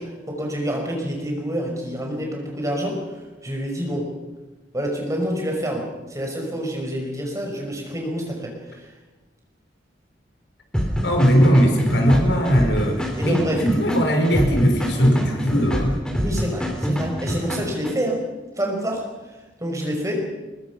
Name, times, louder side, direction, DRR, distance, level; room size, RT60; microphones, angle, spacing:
voice 1, 0.0-3.0 3.4-4.1 4.7-8.9 13.2-13.6 16.2-18.2 18.5-19.0 19.6-20.3, equal, 15° right, 1 dB, 5.2 m, -27 dB
sound 1, 10.7-17.9, equal, 5° left, 3.3 m, -26 dB
voice 2, 11.0-16.0, equal, 70° left, 4 dB, 4.6 m, -19 dB
24.0 x 21.5 x 6.0 m, 1.2 s
head